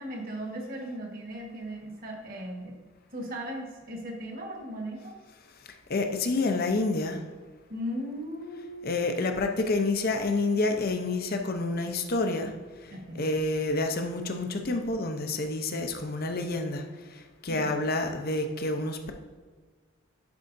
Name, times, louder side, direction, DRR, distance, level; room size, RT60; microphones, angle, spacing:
voice 1, 0.0-2.7 3.1-5.1 7.7-9.0 12.9-13.3 17.5-17.7, equal, 45° right, 1 dB, 1.3 m, -37 dB
voice 2, 5.9-7.2 8.8-12.5 13.2-16.8 17.4-19.1, left 2 dB, 45° left, 5 dB, 0.7 m, -28 dB
10.5 x 4.7 x 2.6 m, 1.4 s
head